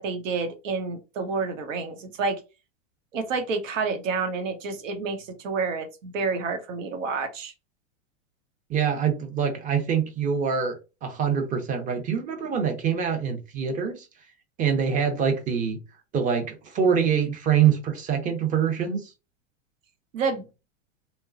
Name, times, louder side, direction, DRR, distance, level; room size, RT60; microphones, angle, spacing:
voice 1, 0.0-2.4 3.1-7.5 20.1-20.5, right 4 dB, 75° right, 0.9 m, -29 dB
voice 2, 8.7-14.1 14.6-15.8 16.1-19.1, right 7 dB, 20° right, 0.6 m, -25 dB
3.0 x 2.2 x 2.4 m
hypercardioid pair, 130°, 39 cm